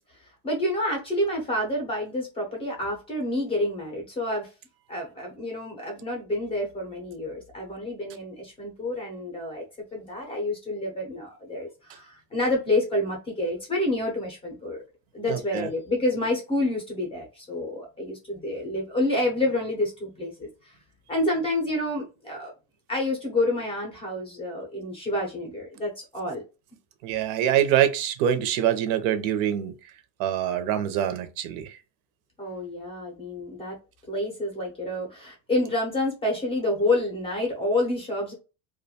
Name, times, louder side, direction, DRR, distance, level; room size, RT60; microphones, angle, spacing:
voice 1, 0.4-4.5 4.9-9.6 9.9-14.8 15.1-20.7 21.1-22.5 22.9-26.4 32.4-33.8 34.1-38.3, left 1 dB, 15° left, 0.4 m, -28 dB
voice 2, 15.3-15.7 27.0-29.7 30.2-31.8, right 10 dB, 85° right, 0.6 m, -25 dB
2.4 x 2.2 x 2.7 m
cardioid pair, 180°, 42 cm